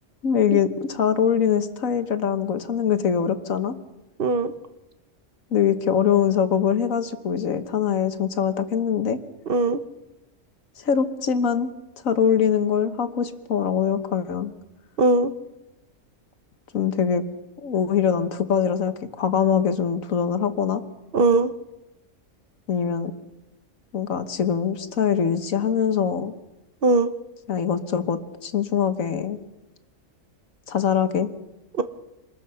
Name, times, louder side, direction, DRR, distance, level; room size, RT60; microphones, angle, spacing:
voice 1, 0.2-3.8 5.5-9.2 10.8-11.7 12.0-14.5 16.7-17.2 17.6-20.8 22.7-23.1 23.9-26.3 27.5-29.4 30.7-31.3, left 7 dB, 90° left, 9 dB, 1.7 m, -23 dB
voice 2, 4.2-4.5 9.5-9.8 15.0-15.3 21.1-21.5 26.8-27.1 31.8-31.9, right 3 dB, 45° right, 10 dB, 1.1 m, -19 dB
26.5 x 20.5 x 5.7 m, 0.99 s
omnidirectional pair, 1.4 m